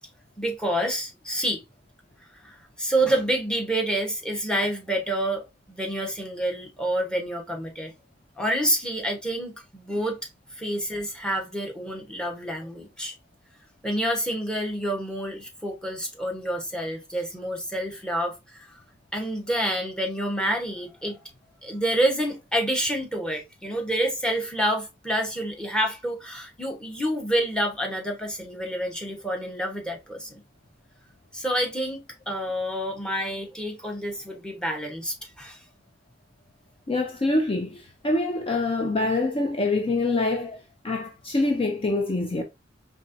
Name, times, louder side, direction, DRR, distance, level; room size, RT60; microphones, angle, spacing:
voice 1, 0.4-1.6 2.4-7.9 8.4-10.2 10.6-13.1 13.8-18.7 19.1-21.2 21.6-30.4 31.3-32.0 32.3-35.6, right 1 dB, 5° left, 1.0 m, -28 dB
voice 2, 36.9-40.5 40.8-42.4, left 2 dB, 30° left, 0.5 m, -25 dB
4.2 x 3.4 x 2.5 m
head